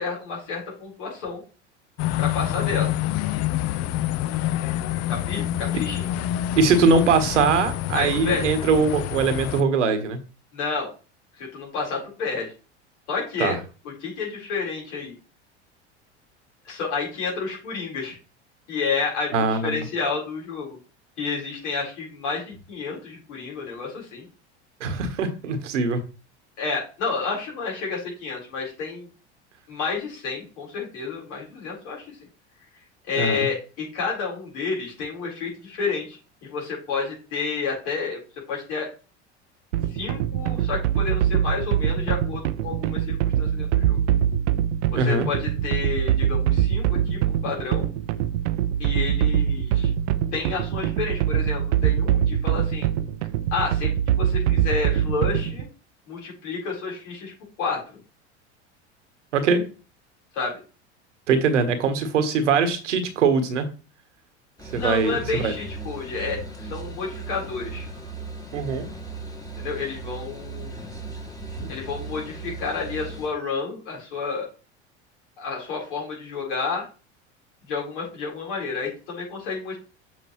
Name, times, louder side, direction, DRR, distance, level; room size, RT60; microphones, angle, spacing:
voice 1, 0.0-1.4 2.2-2.9 5.1-6.0 7.9-8.5 10.5-10.9 11.4-12.5 13.1-13.6 14.0-15.2 16.7-18.2 18.7-20.8 21.2-24.3 26.6-29.1 29.7-32.1 33.1-38.2 38.5-38.9 39.9-44.0 44.9-47.9 48.8-49.9 50.3-52.9 53.5-55.7 56.1-57.3 57.6-57.8 60.3-60.6 64.7-67.9 69.6-70.8 71.7-74.5 75.4-76.9 77.7-79.8, left 4 dB, 75° left, -2 dB, 4.1 m, -30 dB
sound 1, 2.0-9.6, left 13 dB, 45° left, 0.5 m, -27 dB
voice 2, 6.6-10.2 13.4-13.6 19.3-19.8 24.8-26.0 33.2-33.5 44.9-45.3 59.3-59.6 61.3-63.7 64.7-65.5 68.5-68.9, right 4 dB, 85° right, 9 dB, 1.3 m, -22 dB
sound 2, 39.7-55.6, right 10 dB, 70° right, 0.5 m, -23 dB
sound 3, 64.6-73.3, right 4 dB, 10° left, 1.5 m, -37 dB
7.6 x 5.1 x 3.1 m, 0.34 s
hypercardioid pair, 80°, 35 cm